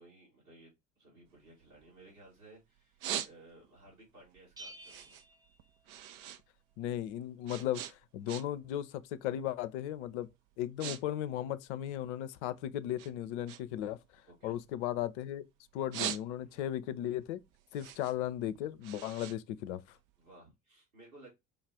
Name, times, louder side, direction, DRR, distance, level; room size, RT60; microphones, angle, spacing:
voice 1, 0.0-5.2 14.3-14.6 16.3-16.6 20.2-21.3, right 2 dB, 85° right, 2.6 m, -58 dB
sound 1, 1.3-2.4 2.7-3.8 4.2-6.4 6.7-8.7 9.0-9.4 10.0-10.1 10.5-11.0 11.2-12.5 13.0-15.3 15.7-16.7 17.1-20.3, right 10 dB, 55° right, 0.6 m, -42 dB
Bell, 4.6-6.4, right 1 dB, 10° right, 0.6 m, -53 dB
voice 2, 6.8-10.3 10.6-14.0 14.4-15.4 15.7-17.4 17.7-20.0, left 12 dB, 60° left, 0.5 m, -36 dB
5.1 x 2.4 x 3.3 m
figure-of-eight pair, 60°, 40 cm